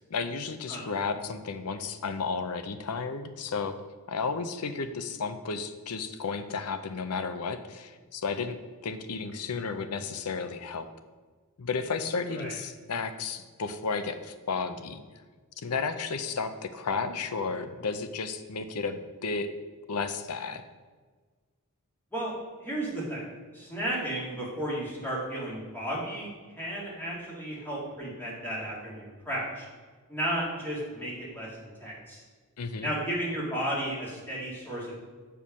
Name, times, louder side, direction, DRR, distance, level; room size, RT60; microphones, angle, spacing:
voice 1, 0.1-3.8 4.1-8.6 8.8-10.9 11.6-15.0 15.6-19.5 19.9-20.6 32.6-32.9, left 4 dB, 90° left, 10 dB, 0.6 m, -33 dB
voice 2, 22.6-23.3 23.5-26.3 26.6-29.7 30.1-32.2 32.8-35.0, right 1 dB, 10° left, -6 dB, 2.5 m, -33 dB
7.0 x 4.7 x 6.1 m, 1.5 s
head